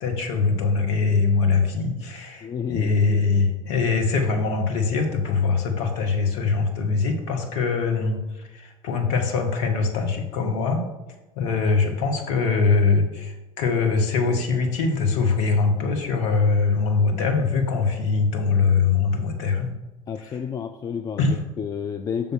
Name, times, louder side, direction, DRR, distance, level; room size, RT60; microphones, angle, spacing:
voice 1, 0.0-10.8 11.4-19.7 21.2-21.3, left 4 dB, 55° left, 4 dB, 1.2 m, -22 dB
voice 2, 2.4-3.3 20.1-22.3, left 7 dB, 20° left, 7 dB, 0.3 m, -31 dB
6.6 x 3.6 x 5.9 m, 1.0 s
figure-of-eight pair, 70°, 18 cm